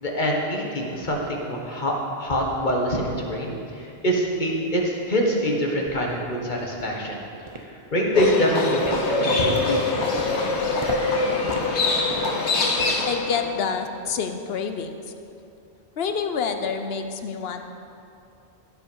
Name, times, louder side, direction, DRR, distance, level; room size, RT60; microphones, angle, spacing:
voice 1, 0.0-7.2 7.5-10.1, equal, 45° left, -1 dB, 1.6 m, -25 dB
sound 1, 4.8-4.9 5.5-5.6 6.1-6.3 6.8-7.1 7.5-7.9 8.2-13.1 13.4-13.7 14.1-14.3 14.8-14.9, right 2 dB, 30° right, 0.8 m, -38 dB
Livestock farm animals working animals, 8.1-13.5, left 3 dB, 80° left, 1.3 m, -24 dB
voice 2, 13.1-14.9 16.0-17.6, left 6 dB, 65° left, 7 dB, 0.9 m, -27 dB
16.0 x 5.5 x 5.5 m, 2.6 s
omnidirectional pair, 1.1 m